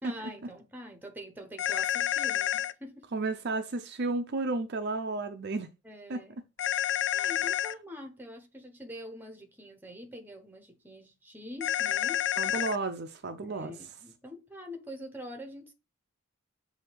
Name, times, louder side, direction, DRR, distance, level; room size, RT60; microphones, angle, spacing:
voice 1, 0.0-3.1 5.8-6.4 7.1-12.3 13.4-15.7, left 1 dB, 10° right, 0.9 m, -45 dB
sound 1, 1.6-2.7 6.6-7.7 11.6-12.8, left 11 dB, 55° left, 0.3 m, -29 dB
voice 2, 3.1-5.7 6.1-6.2 12.4-13.7, right 3 dB, 50° right, 0.5 m, -32 dB
7.6 x 2.8 x 4.6 m
head